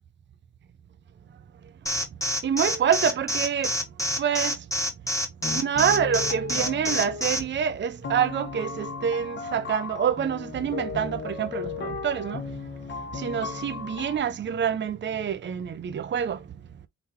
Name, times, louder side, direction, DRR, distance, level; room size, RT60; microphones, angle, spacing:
Alarm, 1.9-7.4, equal, 10° left, 1.5 m, -26 dB
voice 1, 2.4-3.7 4.2-4.5 5.5-12.4 13.2-16.4, right 8 dB, 40° right, 0.7 m, -26 dB
sound 1, 5.4-7.6 8.0-14.2, left 5 dB, 35° left, 1.3 m, -36 dB
4.0 x 3.4 x 2.9 m
cardioid pair, 90°, 30 cm